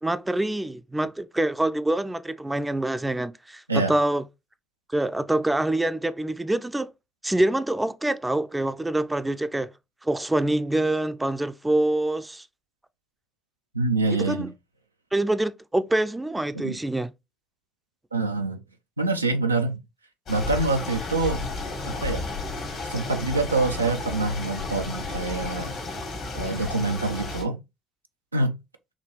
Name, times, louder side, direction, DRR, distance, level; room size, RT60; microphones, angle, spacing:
voice 1, 0.0-4.3 4.9-6.9 7.2-9.7 10.0-12.5 14.1-14.5 15.1-17.1, right 1 dB, 10° right, 0.4 m, -25 dB
voice 2, 13.7-14.5 16.6-16.8 18.1-18.6 19.0-19.8 20.3-21.5 22.0-22.2 22.9-25.8 26.3-27.6 28.3-28.6, right 3 dB, 90° right, 0.3 m, -25 dB
sound 1, 20.3-27.4, left 3 dB, 60° left, 1.6 m, -33 dB
4.8 x 2.9 x 3.0 m
figure-of-eight pair, 50°, 0 cm